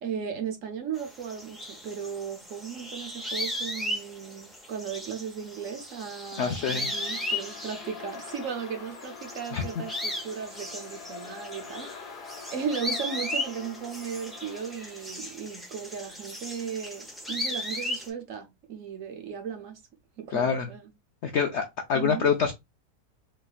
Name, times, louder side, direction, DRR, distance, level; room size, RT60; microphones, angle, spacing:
voice 1, 0.0-12.2 12.5-19.8 20.2-20.9 21.9-22.3, right 7 dB, 60° right, 1.0 m, -36 dB
sound 1, 0.9-8.7 8.9-18.1, left 1 dB, ahead, 0.4 m, -36 dB
sound 2, 5.5-15.4, left 6 dB, 85° left, 1.3 m, -45 dB
voice 2, 6.4-6.9 9.5-9.6 20.3-20.7 21.2-22.5, left 6 dB, 70° left, 0.6 m, -26 dB
3.9 x 3.2 x 2.4 m
omnidirectional pair, 1.6 m